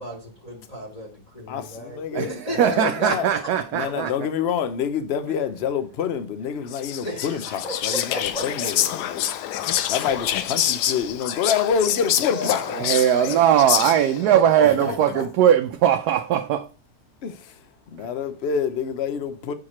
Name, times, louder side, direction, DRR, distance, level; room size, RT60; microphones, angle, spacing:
voice 1, 0.0-3.5 7.0-8.7 12.3-13.4 14.3-15.2, equal, 25° left, 1.5 m, -34 dB
voice 2, 1.5-3.3 3.7-9.3 9.9-12.7 13.0-13.3 14.6-14.9 17.2-17.6 17.9-19.5, left 7 dB, 50° left, 0.8 m, -27 dB
voice 3, 2.1-4.1 12.7-16.7 18.0-18.1, right 10 dB, 75° right, 1.1 m, -20 dB
Whispering, 6.7-14.3, left 11 dB, 80° left, 1.2 m, -27 dB
7.4 x 4.7 x 4.2 m
omnidirectional pair, 1.8 m